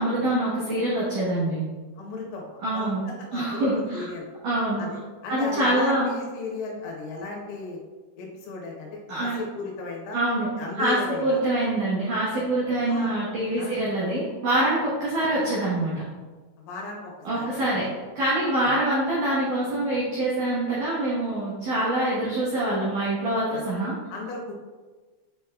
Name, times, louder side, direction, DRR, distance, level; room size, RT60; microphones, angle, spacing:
voice 1, 0.0-1.6 2.6-3.0 3.3-4.1 4.4-4.8 5.3-6.1 9.1-9.4 10.1-10.5 10.8-15.9 17.2-17.9 18.2-23.9, right 1 dB, 80° right, -8 dB, 1.8 m, -25 dB
voice 2, 2.0-2.4 2.7-4.2 4.8-7.8 8.2-10.2 10.6-11.4 12.9-13.1 13.6-13.8 16.6-17.0 17.3-17.5 18.6-18.7 23.5-23.6 24.1-24.5, left 3 dB, 75° left, -1 dB, 3.3 m, -35 dB
8.2 x 5.0 x 2.3 m, 1.3 s
omnidirectional pair, 5.8 m